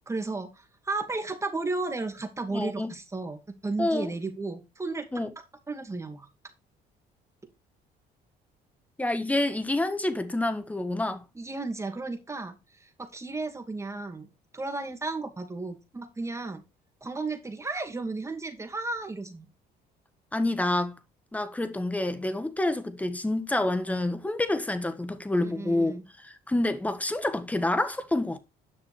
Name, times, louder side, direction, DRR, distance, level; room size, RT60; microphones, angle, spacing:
voice 1, 0.1-5.1 5.7-6.3 11.4-14.3 14.5-16.6 17.0-19.5 25.4-26.0, right 3 dB, 15° right, 2.5 m, -34 dB
voice 2, 2.5-2.9 3.8-4.1 5.1-5.3 9.0-11.2 20.3-21.0 21.3-28.4, left 2 dB, 10° left, 1.5 m, -28 dB
10.5 x 6.1 x 5.0 m
cardioid pair, 110°, 17 cm